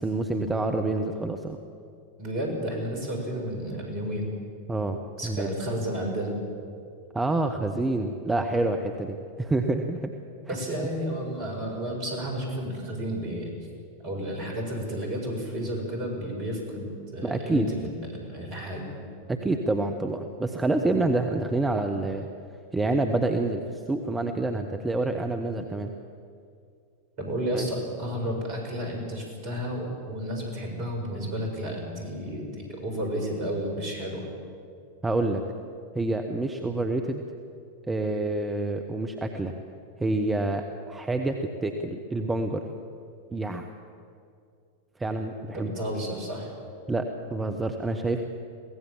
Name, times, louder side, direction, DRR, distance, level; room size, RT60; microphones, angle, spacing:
voice 1, 0.0-1.6 4.7-5.5 7.1-10.1 17.2-17.7 19.3-22.3 22.7-25.9 27.5-27.7 35.0-35.4 35.9-37.2 37.9-39.5 40.0-42.6 43.3-43.7 45.0-45.7 46.9-48.3, right 2 dB, 10° right, 5 dB, 1.2 m, -27 dB
voice 2, 2.2-4.3 5.2-6.4 10.5-13.5 14.0-18.9 27.2-34.3 45.5-46.5, equal, 40° right, 1 dB, 6.9 m, -32 dB
23.0 x 17.0 x 7.5 m, 2.4 s
figure-of-eight pair, 90°, 0 cm